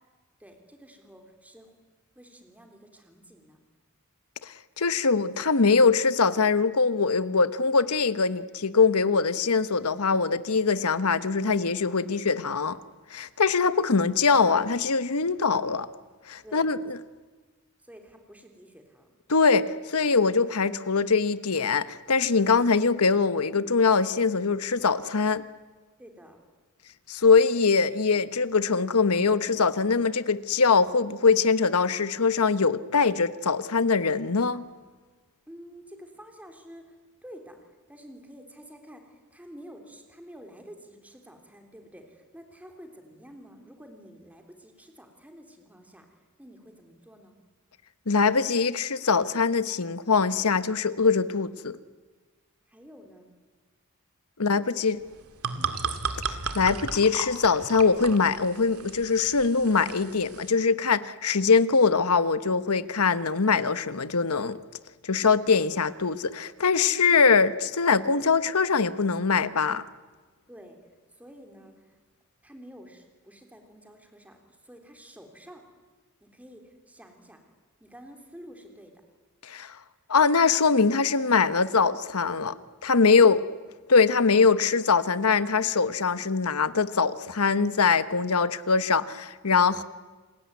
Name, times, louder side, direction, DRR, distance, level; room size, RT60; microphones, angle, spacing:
voice 1, 0.4-1.8 2.2-3.6 16.4-16.7 17.8-19.1 19.7-19.8 26.0-26.4 35.5-47.4 52.7-53.3 54.4-54.8 55.6-55.8 70.5-70.8 71.1-72.0 72.4-74.4 74.6-75.6 76.2-77.4 77.8-78.9 83.1-83.4, equal, 5° right, 4 dB, 3.5 m, -49 dB
voice 2, 4.4-12.8 13.1-15.9 16.3-16.8 19.3-19.7 19.9-25.4 27.1-34.6 48.1-51.8 54.4-55.0 56.5-64.6 65.0-69.8 79.4-79.7 80.1-82.6 82.8-83.4 83.9-89.8, left 4 dB, 80° left, 13 dB, 1.1 m, -22 dB
sound 1, 55.1-60.5, right 5 dB, 90° right, 2.2 m, -35 dB
29.0 x 20.0 x 9.6 m, 1.3 s
head